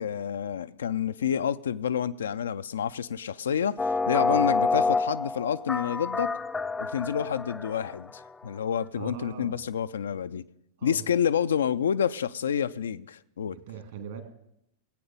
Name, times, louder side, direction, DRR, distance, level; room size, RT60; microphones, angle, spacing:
voice 1, 0.0-6.3 6.8-10.5 10.8-13.6, left 8 dB, 65° left, 0.4 m, -29 dB
sound 1, 3.8-8.3, left 3 dB, 10° left, 0.5 m, -28 dB
voice 2, 9.0-9.6 10.8-11.0 13.7-14.2, right 8 dB, 55° right, 2.3 m, -40 dB
19.0 x 8.5 x 5.4 m
figure-of-eight pair, 90°, 0 cm